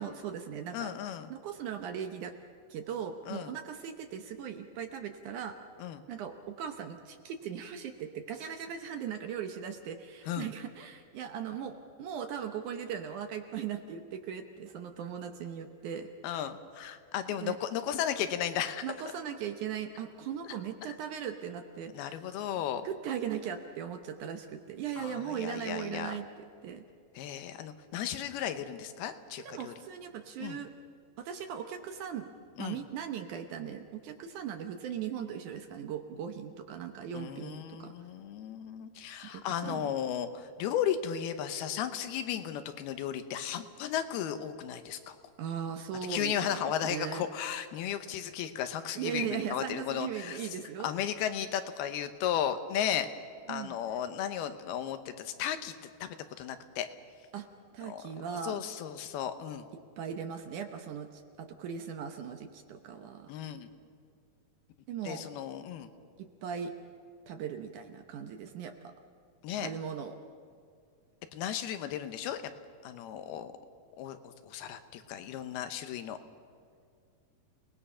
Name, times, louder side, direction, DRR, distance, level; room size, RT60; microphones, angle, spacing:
voice 1, 0.0-0.9 1.3-2.3 2.7-5.5 6.1-16.1 17.4-17.6 18.8-22.2 22.8-26.3 26.6-26.8 29.4-30.7 31.2-32.3 32.6-37.9 39.2-39.9 45.4-47.3 49.0-50.9 53.5-53.8 57.3-57.5 57.7-58.6 60.0-63.3 64.9-65.2 66.2-66.7 67.3-68.9 69.6-70.2, right 8 dB, 70° right, 6 dB, 2.1 m, -38 dB
voice 2, 0.7-1.3 3.3-3.5 5.8-6.0 10.3-10.5 16.2-18.9 21.9-22.9 25.0-26.2 27.2-29.7 30.4-30.6 32.6-32.8 37.1-45.2 46.1-50.5 50.8-53.1 53.5-56.9 57.9-58.1 58.4-59.7 63.3-63.7 65.0-65.9 69.4-69.7 71.3-72.4 72.8-73.5 74.0-76.2, left 9 dB, 90° left, 9 dB, 2.9 m, -35 dB
29.5 x 19.5 x 5.6 m, 2.3 s
omnidirectional pair, 4.3 m